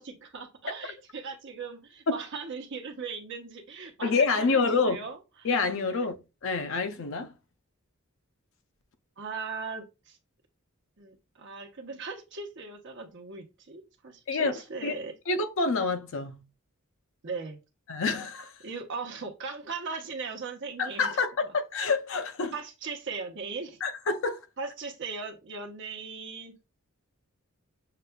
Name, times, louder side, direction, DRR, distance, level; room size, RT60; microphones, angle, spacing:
voice 1, 0.0-5.5 5.9-6.0 9.2-10.2 11.0-15.1 17.2-17.6 18.6-21.1 22.5-23.8 24.6-26.5, right 4 dB, 60° right, 0.9 m, -38 dB
voice 2, 4.0-5.0 5.4-7.3 14.3-14.9 15.3-16.4 17.9-18.5 20.8-22.5 23.8-24.4, left 4 dB, 65° left, 0.5 m, -27 dB
6.7 x 2.4 x 2.2 m
head